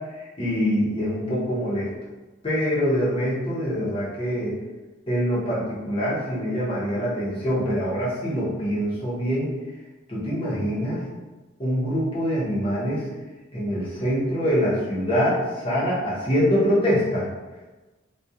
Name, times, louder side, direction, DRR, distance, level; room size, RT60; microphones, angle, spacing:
voice 1, 0.0-1.9 2.4-4.6 5.1-9.5 10.1-11.0 11.6-13.1 13.5-17.3, equal, 30° left, -8 dB, 0.8 m, -24 dB
2.3 x 2.3 x 2.7 m, 1.2 s
head